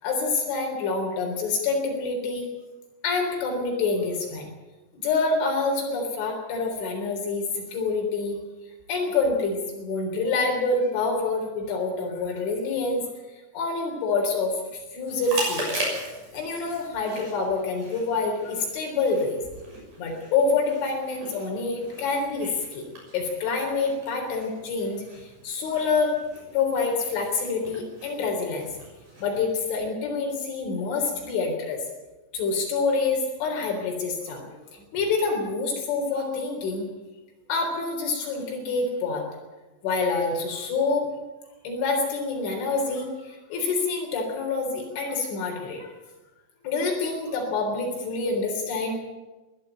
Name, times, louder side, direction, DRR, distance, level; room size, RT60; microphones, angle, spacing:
voice 1, 0.0-2.5 3.0-4.5 5.0-8.4 8.9-13.0 13.3-15.8 16.3-19.4 20.0-22.8 23.1-26.2 26.5-28.8 29.2-31.8 32.3-36.9 37.5-39.3 39.8-41.1 41.6-45.9 46.6-49.0, left 4 dB, 80° left, 1 dB, 6.2 m, -27 dB
Chewing mastication, 15.1-29.7, right 1 dB, 45° right, 7.9 m, -39 dB
21.5 x 14.0 x 8.9 m, 1.1 s
omnidirectional pair, 5.4 m